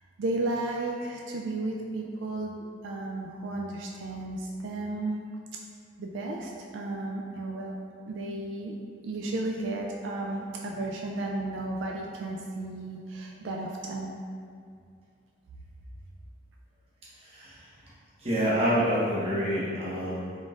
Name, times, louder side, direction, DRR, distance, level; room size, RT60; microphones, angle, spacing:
voice 1, 0.2-2.5 2.8-5.2 6.0-7.7 8.1-8.8 9.0-14.2, right 2 dB, 80° right, 0 dB, 0.3 m, -33 dB
voice 2, 17.2-17.7 18.2-20.4, equal, 30° right, -8 dB, 0.9 m, -27 dB
3.7 x 3.7 x 2.5 m, 2.3 s
head